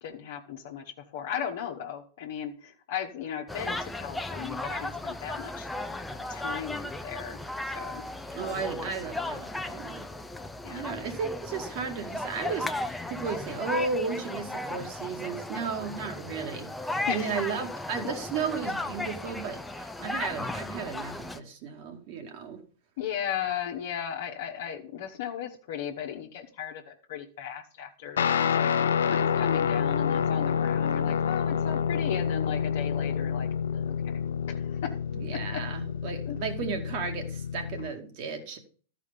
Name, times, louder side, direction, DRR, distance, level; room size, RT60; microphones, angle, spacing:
voice 1, 0.0-5.7 6.3-7.4 7.7-8.0 10.6-11.0 17.1-17.5 23.0-28.7 29.1-34.1 34.5-34.9 35.3-35.6 36.2-36.4, left 9 dB, 60° left, 0 dB, 1.2 m, -36 dB
sound 1, 3.5-21.4, left 2 dB, 5° left, 0.7 m, -36 dB
voice 2, 8.3-10.0 10.7-22.6 35.1-38.6, right 5 dB, 50° right, 4 dB, 2.3 m, -34 dB
Guitar, 28.2-37.9, left 7 dB, 75° left, 0.6 m, -28 dB
13.5 x 4.9 x 5.2 m, 0.42 s
hypercardioid pair, 100°, 0 cm